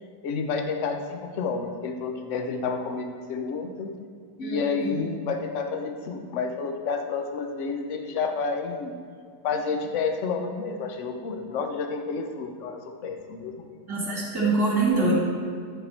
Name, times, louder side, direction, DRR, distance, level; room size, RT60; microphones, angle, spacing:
voice 1, 0.2-3.9 4.4-8.9 9.4-13.8, left 4 dB, 60° left, 4 dB, 0.8 m, -30 dB
voice 2, 4.4-5.0 13.9-15.1, right 3 dB, 10° right, -4 dB, 2.2 m, -25 dB
14.0 x 4.6 x 4.4 m, 2.2 s
omnidirectional pair, 2.2 m